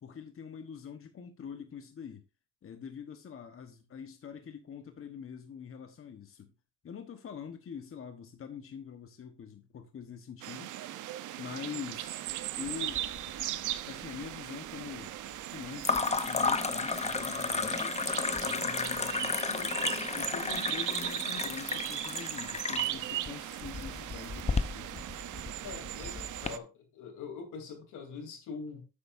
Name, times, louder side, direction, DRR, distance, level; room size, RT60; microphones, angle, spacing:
voice 1, 0.0-2.2 2.6-6.5 6.8-10.7 11.4-12.2 12.6-13.0 13.9-15.1 15.4-18.0 18.4-19.8 20.1-25.1, left 7 dB, 45° left, 1.2 m, -44 dB
sound 1, 10.4-26.6, right 13 dB, 85° right, 0.8 m, -38 dB
sound 2, 12.7-13.4 13.7-14.3 15.8-26.5, left 4 dB, 20° left, 0.8 m, -33 dB
voice 2, 25.6-28.8, left 5 dB, 85° left, 3.3 m, -43 dB
10.5 x 8.5 x 2.6 m
cardioid pair, 90°, 30 cm